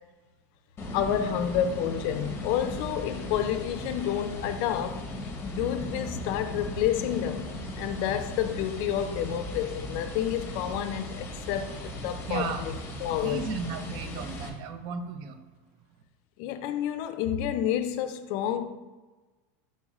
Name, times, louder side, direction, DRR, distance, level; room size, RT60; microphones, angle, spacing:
sound 1, 0.8-14.5, left 1 dB, 25° left, 0.7 m, -37 dB
voice 1, 0.9-5.0 5.4-12.7 13.0-13.4 16.4-18.7, left 10 dB, 55° left, 0.4 m, -29 dB
voice 2, 12.3-12.6 13.2-15.4, right 6 dB, 55° right, 0.5 m, -34 dB
4.2 x 3.6 x 3.0 m
supercardioid pair, 140°, 9 cm